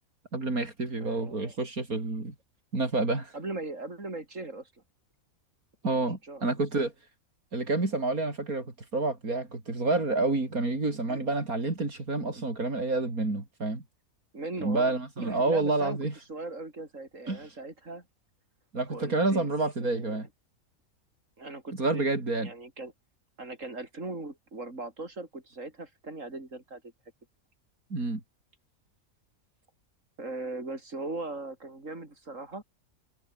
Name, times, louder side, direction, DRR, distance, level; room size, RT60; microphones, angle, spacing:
voice 1, 0.3-2.3 2.7-3.3 5.8-6.9 7.5-13.8 14.6-16.1 17.3-17.4 18.7-20.3 21.8-22.5 27.9-28.2, right 2 dB, 90° right, 5.2 m, -29 dB
voice 2, 1.0-1.6 3.3-4.7 6.0-6.5 11.1-11.2 14.3-18.0 18.9-19.5 19.8-20.2 21.4-22.1 22.4-22.9 23.4-26.8 30.2-32.6, right 2 dB, 60° right, 5.5 m, -39 dB
omnidirectional pair, 1.5 m